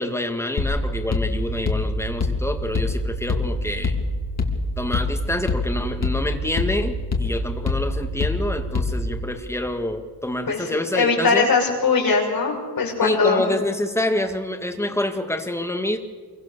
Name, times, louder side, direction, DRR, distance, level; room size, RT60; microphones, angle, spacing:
voice 1, 0.0-4.0 4.8-11.5 13.0-16.0, left 1 dB, 5° left, 4 dB, 2.1 m, -27 dB
sound 1, 0.6-9.3, left 2 dB, 40° left, 2.6 m, -25 dB
voice 2, 10.5-13.4, left 4 dB, 60° left, 0 dB, 6.4 m, -21 dB
27.0 x 23.5 x 7.0 m, 1.5 s
wide cardioid pair, 165°, 39 cm